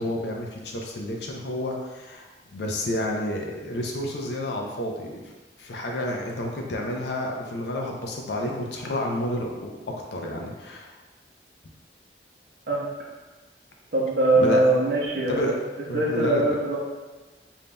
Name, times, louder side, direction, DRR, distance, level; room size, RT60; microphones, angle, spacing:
voice 1, 0.0-5.3 5.6-9.8 10.1-10.9 14.4-14.6 15.2-15.6 15.9-16.6, left 1 dB, 70° left, 0 dB, 0.5 m, -30 dB
voice 2, 13.9-15.5 15.9-16.8, right 2 dB, 55° right, -6 dB, 0.6 m, -22 dB
5.1 x 2.7 x 2.2 m, 1.2 s
head